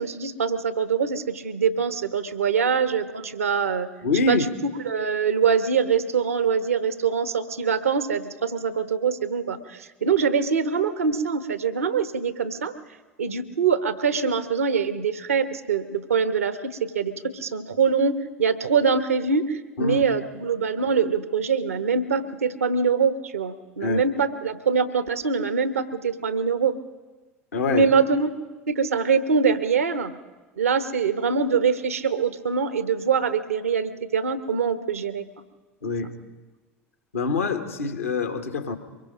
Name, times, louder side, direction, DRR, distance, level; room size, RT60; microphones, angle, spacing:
voice 1, 0.0-3.9 4.3-4.4 4.6-12.7 13.2-26.7 27.7-28.3 28.7-30.2 30.6-35.3, right 6 dB, 80° right, 12 dB, 1.0 m, -24 dB
voice 2, 4.0-4.5 19.8-20.0 23.8-24.0 27.5-27.9 35.8-36.2 37.1-38.8, left 4 dB, 75° left, 8 dB, 1.5 m, -25 dB
24.0 x 22.0 x 5.2 m, 1.2 s
figure-of-eight pair, 70°, 7 cm